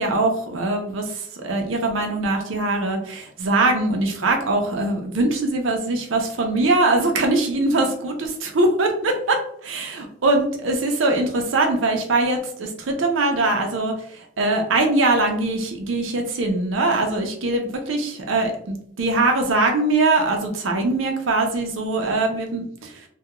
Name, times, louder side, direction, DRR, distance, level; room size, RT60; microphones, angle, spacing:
voice 1, 0.0-23.1, right 2 dB, 90° right, 3 dB, 0.6 m, -22 dB
2.3 x 2.2 x 2.9 m, 0.64 s
head